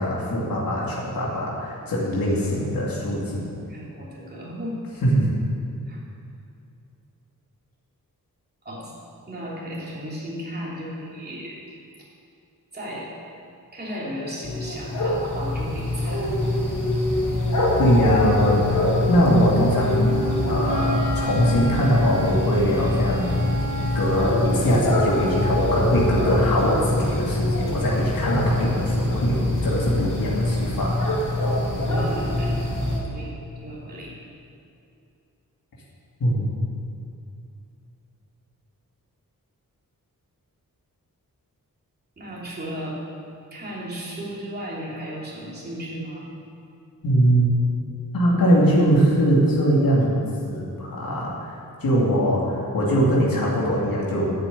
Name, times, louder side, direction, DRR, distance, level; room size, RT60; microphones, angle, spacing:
voice 1, 0.0-3.4 5.0-5.3 17.8-23.4 23.9-31.0 36.2-36.5 47.0-47.5 48.1-50.1 50.4-51.5 51.8-54.3, equal, 85° left, -5 dB, 2.6 m, -22 dB
voice 2, 3.5-4.8 5.9-6.0 8.6-8.9 9.3-11.6 12.7-13.1 13.7-16.3 31.9-32.7 33.0-34.2 42.2-43.0 43.5-46.3, equal, 30° right, -5 dB, 3.1 m, -35 dB
sound 1, 14.4-33.0, left 1 dB, 65° left, 2.4 m, -24 dB
Wind instrument woodwind instrument, 19.9-24.7, right 1 dB, 65° right, 2.5 m, -33 dB
11.0 x 8.1 x 8.2 m, 2.6 s
wide cardioid pair, 160°, 34 cm